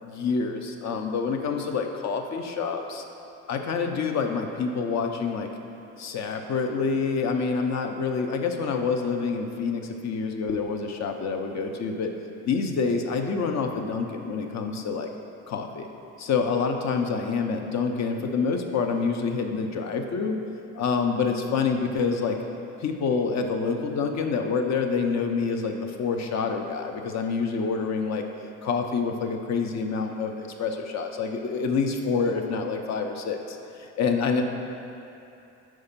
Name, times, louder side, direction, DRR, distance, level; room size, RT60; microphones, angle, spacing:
voice 1, 0.0-3.0 3.5-5.5 6.0-12.1 12.4-15.1 15.5-15.9 16.2-20.4 20.7-22.4 22.8-28.2 28.6-34.4, left 5 dB, 50° left, 4 dB, 0.7 m, -27 dB
4.7 x 4.5 x 5.7 m, 2.7 s
supercardioid pair, 80°, 36 cm